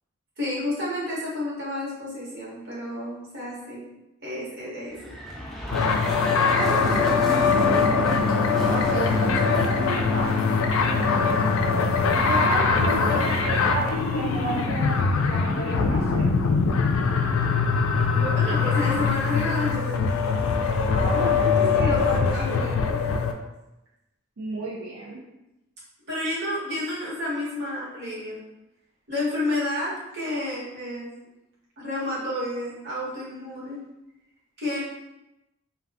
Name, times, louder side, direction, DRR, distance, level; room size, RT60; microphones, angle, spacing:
voice 1, 0.4-3.8 4.2-5.1 18.1-20.0 21.1-23.0 26.1-28.4 29.1-31.1 31.8-33.8 34.6-34.8, left 1 dB, 50° right, -7 dB, 1.1 m, -30 dB
sound 1, 4.9-11.3, equal, ahead, 0.4 m, -33 dB
sound 2, 5.7-23.3, left 5 dB, 80° left, 0.3 m, -22 dB
voice 2, 6.3-7.1 7.4-8.0 8.7-11.4 12.2-16.5 20.9-22.1 24.4-25.2, right 2 dB, 85° right, -5 dB, 0.5 m, -32 dB
sound 3, 7.4-13.7, equal, 30° left, 0.8 m, -31 dB
2.5 x 2.3 x 3.4 m, 0.94 s
head